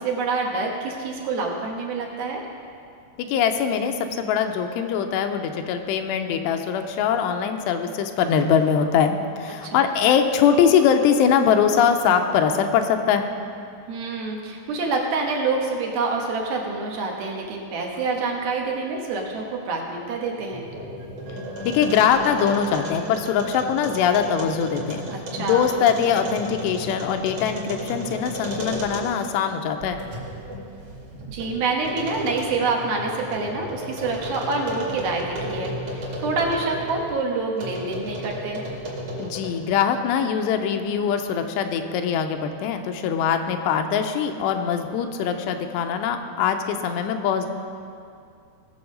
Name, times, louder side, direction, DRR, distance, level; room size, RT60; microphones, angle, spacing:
voice 1, 0.0-2.4 9.6-9.9 13.9-20.6 25.1-25.8 31.3-38.6, right 3 dB, 70° right, 0 dB, 2.8 m, -27 dB
voice 2, 3.2-13.3 21.6-25.0 25.4-30.0 39.2-47.5, left 7 dB, 85° left, 6 dB, 2.8 m, -22 dB
sound 1, 20.4-29.3 29.8-37.1 37.6-39.7, equal, 50° right, 3.1 m, -34 dB
Wind instrument woodwind instrument, 21.0-23.6, left 1 dB, 90° right, 3.4 m, -46 dB
19.0 x 7.0 x 5.3 m, 2.4 s
omnidirectional pair, 4.9 m